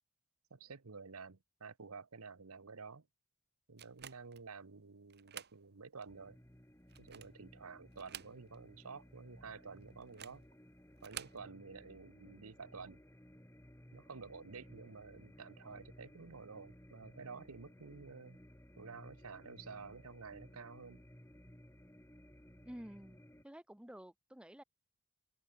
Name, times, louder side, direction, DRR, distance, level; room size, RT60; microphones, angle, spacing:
voice 1, 0.5-3.1 3.7-6.4 7.0-10.4 11.0-13.0 13.9-18.4 18.8-21.0, right 4 dB, 75° right, 1.0 m, -51 dB
sound 1, 3.8-4.5 5.1-5.6 6.0-6.1 6.8-7.4 7.9-8.7 9.0-9.1 10.0-10.4 11.0-11.4, right 10 dB, 45° right, 1.7 m, -50 dB
sound 2, 6.1-23.4, equal, 10° left, 3.5 m, -59 dB
voice 2, 22.6-23.2 23.4-24.6, equal, 5° right, 0.5 m, -51 dB
head